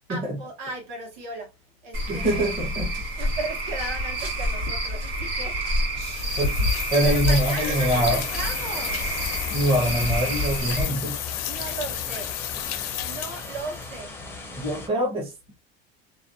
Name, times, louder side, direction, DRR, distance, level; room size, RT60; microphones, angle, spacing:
voice 1, 0.1-1.5 1.8-2.5 3.2-6.2 7.0-9.1 11.5-12.3 13.0-14.1, right 3 dB, 60° right, 1.1 m, -36 dB
Cricket / Frog, 1.9-10.8, equal, 85° right, 1.3 m, -28 dB
voice 2, 2.1-2.9 6.4-8.2 9.5-11.2 14.6-15.3, right 1 dB, 20° right, 0.8 m, -24 dB
sound 1, 6.0-13.9, left 11 dB, 80° left, 0.5 m, -33 dB
sound 2, 7.8-14.9, left 4 dB, 10° left, 0.5 m, -38 dB
2.4 x 2.2 x 2.6 m
supercardioid pair, 130°, 30 cm